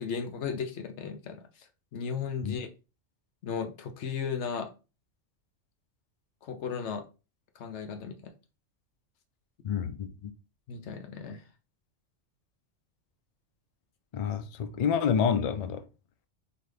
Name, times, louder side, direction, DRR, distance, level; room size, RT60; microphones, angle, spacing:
voice 1, 0.0-1.4 1.9-2.7 3.4-4.7 6.4-7.0 7.6-8.3 10.7-11.4, left 6 dB, 65° left, 1.0 m, -35 dB
voice 2, 9.6-10.3 14.1-15.8, left 7 dB, 90° left, 0.3 m, -28 dB
4.1 x 2.8 x 3.2 m
omnidirectional pair, 1.3 m